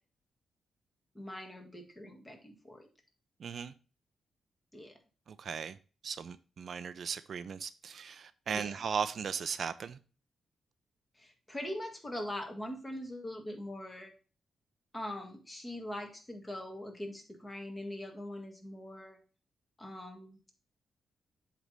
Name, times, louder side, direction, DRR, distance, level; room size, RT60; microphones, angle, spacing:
voice 1, 1.2-2.9 4.7-5.0 8.5-8.7 11.2-14.1 14.9-19.2 19.8-20.4, left 1 dB, 20° left, 1.9 m, -42 dB
voice 2, 3.4-3.7 5.3-5.8 6.0-10.0, right 6 dB, 60° right, 0.4 m, -37 dB
8.0 x 3.3 x 5.2 m
cardioid pair, 85°, 0 cm